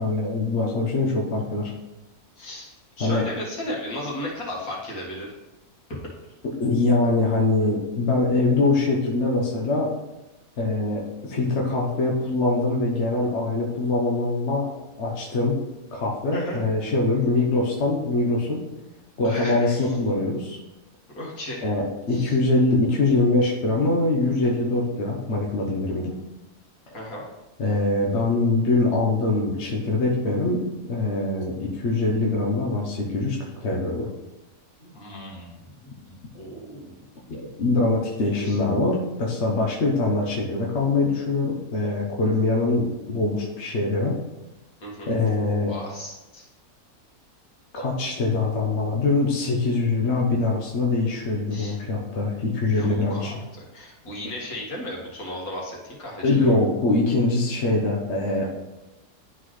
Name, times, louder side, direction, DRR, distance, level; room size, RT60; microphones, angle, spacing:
voice 1, 0.0-1.7 3.0-3.2 6.6-9.9 10.6-14.7 15.0-15.6 15.9-18.6 19.2-20.6 21.6-26.1 27.6-34.1 37.3-44.2 45.1-45.7 47.7-53.3 56.2-58.5, left 2 dB, 50° left, -2 dB, 1.2 m, -23 dB
voice 2, 2.4-2.7 3.0-5.3 5.9-6.0 16.3-16.6 19.2-20.0 21.1-21.7 22.1-22.4 26.9-27.2 34.8-36.9 38.4-38.6 44.8-45.1 45.4-46.5 51.5-51.8 52.6-56.6, left 1 dB, 70° left, -4 dB, 2.3 m, -35 dB
11.5 x 4.0 x 3.2 m, 1.0 s
omnidirectional pair, 1.6 m